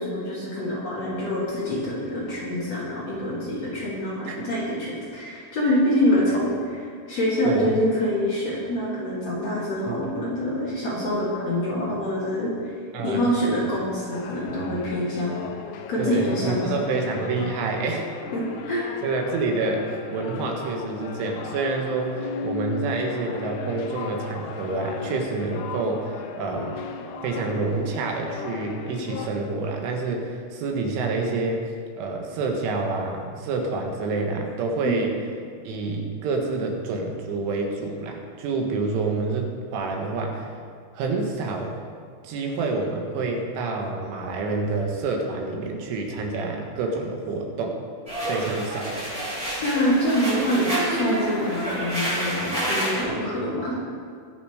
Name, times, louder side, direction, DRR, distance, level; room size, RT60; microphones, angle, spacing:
voice 1, 0.0-12.7 13.0-15.4 15.9-16.8 18.3-18.9 34.8-35.0 49.6-53.8, equal, 45° left, -7 dB, 2.6 m, -25 dB
voice 2, 7.5-7.8 9.9-10.0 12.9-13.3 16.0-18.1 19.0-26.8 27.2-31.6 32.0-35.1 35.7-40.5 41.0-41.7 42.2-47.8 48.3-48.9, right 3 dB, 80° right, 2 dB, 3.9 m, -28 dB
sound 1, 14.1-29.3, left 5 dB, 85° left, 2.3 m, -36 dB
sound 2, 48.1-53.0, right 1 dB, 10° right, 3.4 m, -28 dB
20.5 x 7.0 x 5.0 m, 2.2 s
omnidirectional pair, 5.5 m